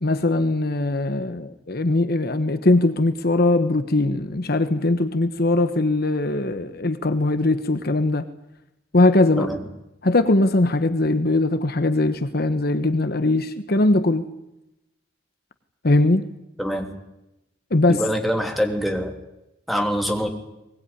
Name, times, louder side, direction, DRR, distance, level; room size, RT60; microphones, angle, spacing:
voice 1, 0.0-8.3 8.9-9.5 10.0-14.3 15.8-16.2 17.7-18.0, left 2 dB, 50° left, 10 dB, 1.2 m, -20 dB
voice 2, 17.9-19.1 19.7-20.3, equal, ahead, 3 dB, 3.3 m, -24 dB
22.0 x 20.5 x 9.9 m, 0.92 s
head